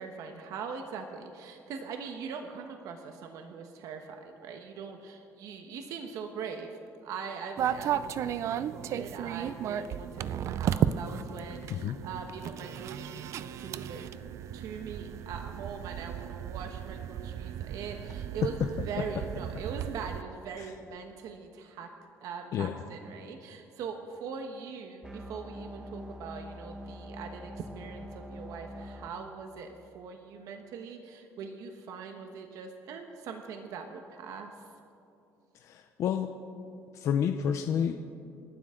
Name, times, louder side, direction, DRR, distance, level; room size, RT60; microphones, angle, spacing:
voice 1, 0.0-14.1 14.5-18.6 18.8-21.9 22.2-34.6, right 5 dB, 65° right, 5 dB, 1.2 m, -41 dB
sound 1, 7.6-20.2, right 9 dB, 50° right, 0.5 m, -34 dB
sound 2, 25.0-29.1, equal, 10° right, 1.1 m, -44 dB
voice 2, 35.6-36.3 36.9-38.0, left 8 dB, 50° left, 5 dB, 0.7 m, -29 dB
29.0 x 12.0 x 3.8 m, 2.7 s
cardioid pair, 165°, 6 cm